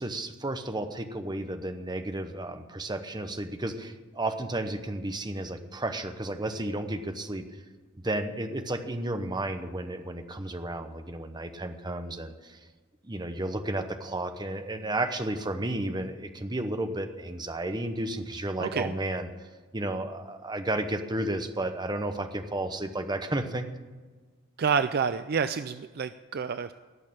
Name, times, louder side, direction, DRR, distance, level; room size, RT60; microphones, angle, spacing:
voice 1, 0.0-7.4 8.0-12.6 13.0-19.3 19.7-23.7, right 1 dB, 20° right, 7 dB, 0.9 m, -32 dB
voice 2, 18.6-18.9 24.6-26.7, right 6 dB, 45° right, 11 dB, 0.4 m, -28 dB
18.0 x 6.5 x 8.8 m, 1.4 s
head